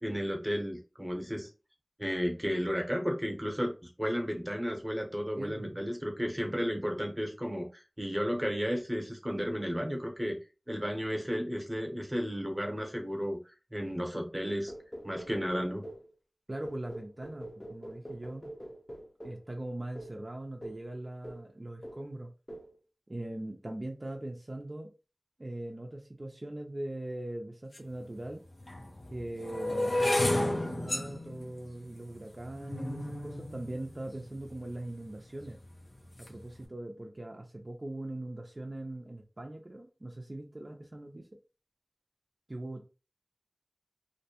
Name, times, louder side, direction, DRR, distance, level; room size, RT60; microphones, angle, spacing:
voice 1, 0.0-1.5 2.0-10.4 10.7-14.7 15.0-15.8, equal, 15° right, 2 dB, 0.8 m, -33 dB
voice 2, 5.4-5.8 16.5-18.5 19.2-22.3 23.1-24.9 25.4-28.4 29.1-35.6 36.2-41.3 42.5-42.8, right 1 dB, 55° right, 2 dB, 0.4 m, -41 dB
sound 1, 14.7-16.1 16.6-19.5 19.9-20.2 20.6-20.9 21.2-21.5 21.8-22.1 22.5-22.7, equal, 30° left, 0.6 m, -45 dB
sound 2, 27.7-27.8 28.6-34.7 35.4-35.8 36.0-36.4, left 1 dB, 85° left, 0.6 m, -33 dB
2.5 x 2.1 x 2.8 m, 0.32 s
wide cardioid pair, 40°, 0 cm